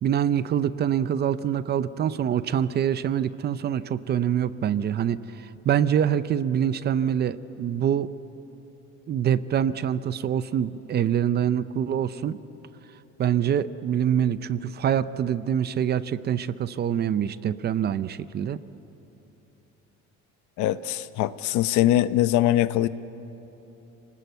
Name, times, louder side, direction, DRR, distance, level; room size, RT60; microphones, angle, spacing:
voice 1, 0.0-5.2 5.7-8.1 9.1-12.4 13.2-18.6, right 9 dB, 35° right, 14 dB, 0.5 m, -25 dB
voice 2, 20.6-22.9, left 13 dB, 75° left, 13 dB, 0.8 m, -22 dB
29.0 x 20.0 x 8.0 m, 3.0 s
cardioid pair, 160°, 29 cm